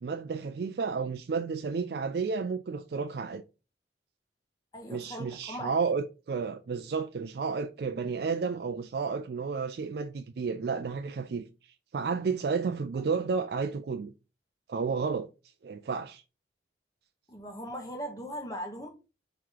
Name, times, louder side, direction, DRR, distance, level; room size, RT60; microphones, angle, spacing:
voice 1, 0.0-3.4 4.9-14.1 14.7-15.3 15.6-16.2, right 5 dB, 60° right, 0.4 m, -32 dB
voice 2, 4.7-5.9 17.3-18.9, equal, 20° left, 1.0 m, -39 dB
3.6 x 3.0 x 4.7 m
head